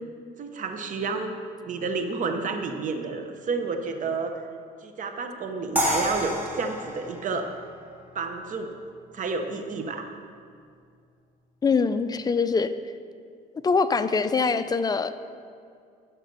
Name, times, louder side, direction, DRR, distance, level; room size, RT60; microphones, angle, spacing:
voice 1, 0.4-1.3 1.6-4.3 4.8-7.5 8.1-8.7 9.1-10.1, right 4 dB, 50° right, 6 dB, 1.0 m, -30 dB
sound 1, 5.8-8.8, equal, 10° right, 2.4 m, -30 dB
voice 2, 11.6-12.7 13.6-15.1, left 5 dB, 25° left, 11 dB, 0.5 m, -23 dB
13.5 x 5.9 x 5.5 m, 2.3 s
cardioid pair, 110°, 17 cm